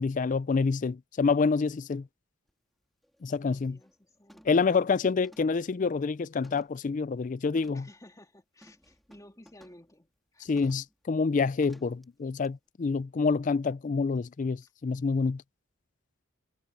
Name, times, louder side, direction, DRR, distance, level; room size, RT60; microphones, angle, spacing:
voice 1, 0.0-2.1 3.2-3.8 4.5-7.9 10.4-15.4, left 4 dB, 40° left, 0.4 m, -27 dB
sound 1, 2.5-2.6 3.0-3.3 3.6-4.0 4.3-4.7 5.2-6.9 7.6-7.9 8.6-9.9 10.6-10.9 11.6-12.0 12.4-12.5, equal, ahead, 3.2 m, -58 dB
voice 2, 3.3-4.8 7.7-10.5, left 1 dB, 15° left, 3.1 m, -55 dB
head